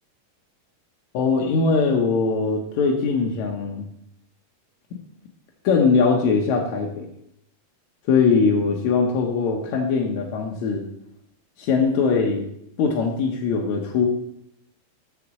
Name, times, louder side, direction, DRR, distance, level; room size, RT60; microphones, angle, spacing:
voice 1, 1.1-3.9 5.6-7.1 8.1-10.9 11.6-12.5 12.8-14.1, left 5 dB, 75° left, 0 dB, 1.7 m, -21 dB
6.6 x 6.2 x 7.3 m, 0.74 s
omnidirectional pair, 4.5 m